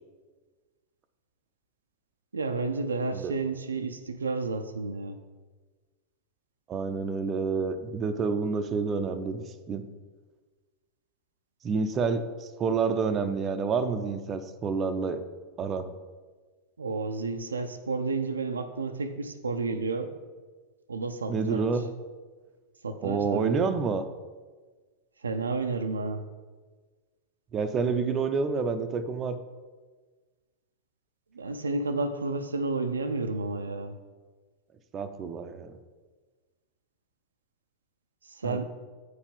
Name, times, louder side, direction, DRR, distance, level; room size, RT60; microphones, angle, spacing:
voice 1, 2.3-5.2 16.8-20.1 20.9-21.7 22.8-23.5 25.2-26.2 31.3-34.0 38.2-38.7, right 3 dB, 75° right, 7 dB, 0.5 m, -31 dB
voice 2, 6.7-9.8 11.6-15.2 15.6-15.8 21.3-21.9 23.0-24.1 27.5-29.4 34.9-35.7 38.4-38.7, right 5 dB, 25° right, 8 dB, 0.5 m, -28 dB
8.3 x 4.8 x 5.3 m, 1.4 s
figure-of-eight pair, 90°, 0 cm